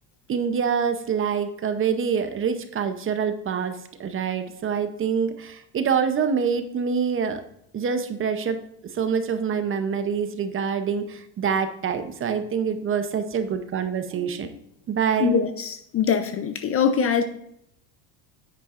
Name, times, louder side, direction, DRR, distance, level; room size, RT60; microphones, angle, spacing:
voice 1, 0.3-7.4 7.7-8.6 8.9-14.5 14.9-15.3, right 6 dB, 30° right, 9 dB, 0.7 m, -26 dB
voice 2, 15.2-17.2, left 6 dB, 30° left, 9 dB, 0.5 m, -23 dB
9.9 x 8.3 x 2.5 m, 0.74 s
cardioid pair, 135°, 45 cm